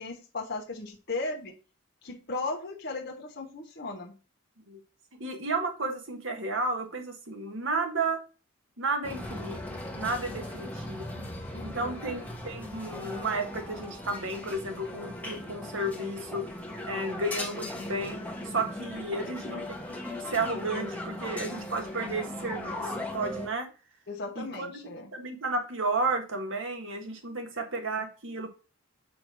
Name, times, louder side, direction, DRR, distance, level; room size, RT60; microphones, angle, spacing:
voice 1, 0.0-1.5 2.0-4.1 11.5-12.0 19.1-19.3 24.1-25.1, left 3 dB, 50° left, -2 dB, 1.2 m, -36 dB
voice 2, 5.1-8.2 8.8-11.2 11.6-16.5 16.9-23.7 24.4-24.8 25.1-28.5, right 2 dB, 65° right, 4 dB, 1.7 m, -33 dB
sound 1, 9.0-23.5, left 1 dB, 5° left, 1.2 m, -38 dB
8.6 x 2.9 x 6.1 m, 0.34 s
head